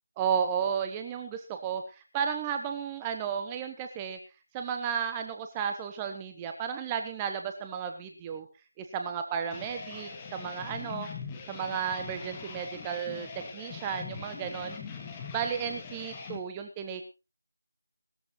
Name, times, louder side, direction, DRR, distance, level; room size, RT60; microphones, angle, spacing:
voice 1, 0.2-4.2 4.5-8.5 8.8-11.1 11.5-14.8 15.3-17.0, right 7 dB, 10° right, 6 dB, 0.7 m, -33 dB
sound 1, 9.5-16.4, left 5 dB, 15° left, 2.0 m, -42 dB
19.5 x 13.5 x 3.1 m, 0.30 s
figure-of-eight pair, 165°, 0 cm